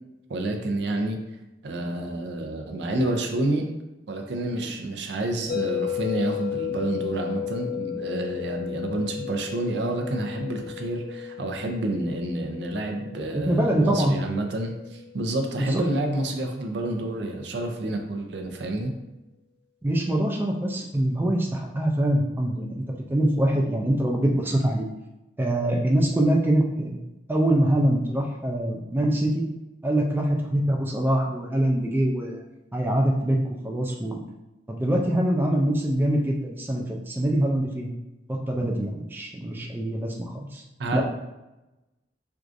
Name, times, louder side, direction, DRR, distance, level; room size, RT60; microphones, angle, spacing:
voice 1, 0.3-1.2 1.6-3.6 4.1-18.9 40.8-41.0, right 1 dB, 70° right, 3 dB, 0.5 m, -29 dB
sound 1, 5.5-15.6, left 10 dB, 80° left, 1.1 m, -34 dB
voice 2, 13.3-14.2 15.6-15.8 19.8-22.8 23.1-24.9 25.4-27.0 27.3-29.4 29.8-32.4 32.7-33.4 33.6-34.2 34.7-37.9 38.3-40.6 40.9-41.0, right 1 dB, 10° right, 0 dB, 0.3 m, -24 dB
4.5 x 2.4 x 2.5 m, 0.99 s
head